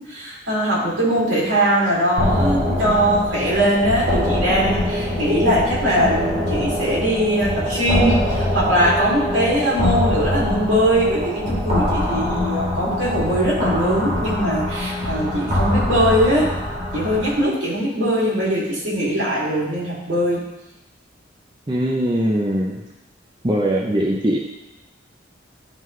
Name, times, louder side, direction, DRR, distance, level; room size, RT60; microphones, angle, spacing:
voice 1, 0.0-16.5 16.9-20.4, equal, 70° right, -6 dB, 2.5 m, -21 dB
sound 1, 2.2-17.4, left 1 dB, 40° right, 1.7 m, -23 dB
voice 2, 21.7-22.8 23.4-24.4, right 1 dB, 25° right, -2 dB, 0.6 m, -21 dB
10.5 x 3.8 x 3.2 m, 0.97 s
head